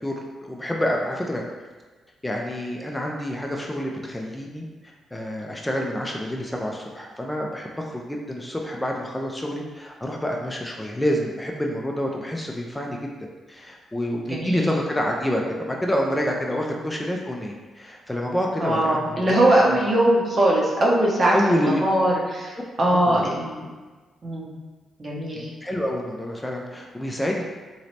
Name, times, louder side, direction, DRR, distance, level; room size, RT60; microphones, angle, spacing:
voice 1, 0.0-1.4 2.2-4.6 5.1-13.0 13.5-19.3 19.7-19.8 21.3-21.8 23.1-23.3 25.3-27.4, equal, 15° left, -1 dB, 0.5 m, -27 dB
voice 2, 14.3-14.7 16.6-16.7 18.6-21.3 21.8-23.6 24.2-24.5 25.0-25.5, right 1 dB, 40° right, -3 dB, 0.9 m, -21 dB
3.1 x 2.9 x 2.8 m, 1.3 s
hypercardioid pair, 40°, 0 cm